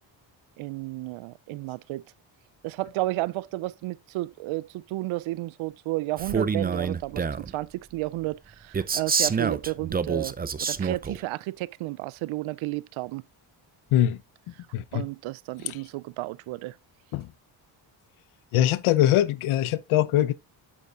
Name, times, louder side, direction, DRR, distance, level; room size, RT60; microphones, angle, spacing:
voice 1, 0.6-2.0 2.6-7.3 7.5-13.2 14.9-16.7, right 18 dB, 75° right, 0.5 m, -32 dB
Male speech man speaking, 6.2-7.5 8.7-11.2, right 5 dB, 20° right, 0.5 m, -27 dB
voice 2, 13.9-14.2 14.7-15.1 15.6-15.8 17.1-17.3 18.5-20.3, left 12 dB, 85° left, 0.8 m, -22 dB
8.3 x 8.3 x 2.5 m
cardioid pair, 85°, 48 cm